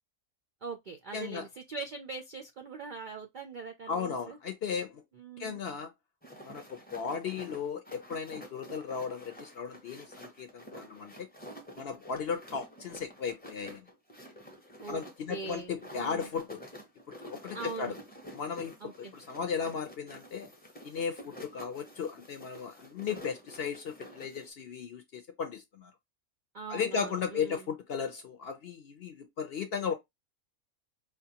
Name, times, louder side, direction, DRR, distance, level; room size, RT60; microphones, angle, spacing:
voice 1, 0.6-4.4 5.1-5.5 14.8-15.0 15.3-16.3 17.5-18.0 18.8-19.1 26.5-27.7, right 4 dB, 75° right, 0.4 m, -42 dB
voice 2, 1.1-1.5 3.9-5.0 5.4-5.9 6.4-11.3 11.7-13.8 14.9-16.6 17.2-17.9 18.3-20.5 20.8-25.9 26.7-29.9, left 6 dB, 60° left, 0.6 m, -36 dB
sound 1, 6.2-24.5, equal, 10° left, 0.5 m, -49 dB
5.1 x 2.3 x 2.8 m
omnidirectional pair, 1.5 m